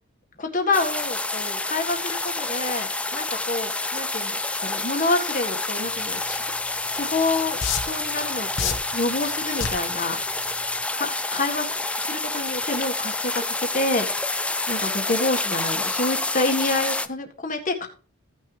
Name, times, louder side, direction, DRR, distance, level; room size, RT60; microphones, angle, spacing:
voice 1, 0.4-6.5 6.9-10.2 11.0-11.7 12.0-14.2 14.7-17.9, left 2 dB, 35° left, 4 dB, 1.7 m, -27 dB
sound 1, 0.7-17.1, left 2 dB, 5° left, 0.3 m, -28 dB
sound 2, 6.8-6.9 7.6-8.0 8.6-8.9 9.6-9.9 10.6-10.8, left 6 dB, 60° left, 1.3 m, -25 dB
16.0 x 6.2 x 3.4 m, 0.38 s
head